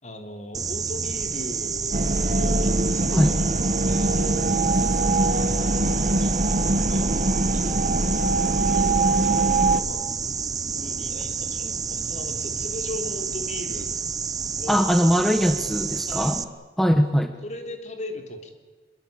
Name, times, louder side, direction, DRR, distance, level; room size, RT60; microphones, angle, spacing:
voice 1, 0.0-3.5 3.9-4.7 5.3-6.3 6.7-7.2 8.7-10.1 10.7-13.9 14.6-14.9 16.1-16.4 17.4-18.6, left 1 dB, 40° left, 5 dB, 3.6 m, -38 dB
sound 1, 0.5-16.4, right 5 dB, 20° right, 0.8 m, -29 dB
sound 2, 1.9-9.8, right 2 dB, 45° right, 1.3 m, -22 dB
voice 2, 14.7-16.4 16.8-17.3, equal, ahead, 7 dB, 1.2 m, -21 dB
25.0 x 22.5 x 8.7 m, 1.4 s
head